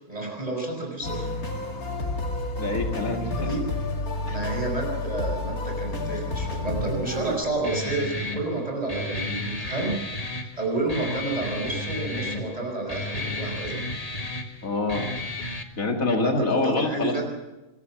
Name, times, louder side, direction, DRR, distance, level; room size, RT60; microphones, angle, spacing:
voice 1, 0.1-1.3 3.4-3.6 4.3-13.8 16.2-17.3, right 2 dB, 25° right, 0 dB, 5.7 m, -30 dB
sound 1, 1.0-7.4, left 2 dB, 85° left, 2.7 m, -30 dB
voice 2, 2.6-3.5 4.2-4.4 14.6-15.1 15.8-17.3, left 3 dB, 70° left, 2 dB, 2.6 m, -26 dB
Guitar, 7.6-15.6, left 2 dB, 25° left, 1.8 m, -33 dB
25.5 x 14.0 x 7.6 m, 1.1 s
omnidirectional pair, 1.5 m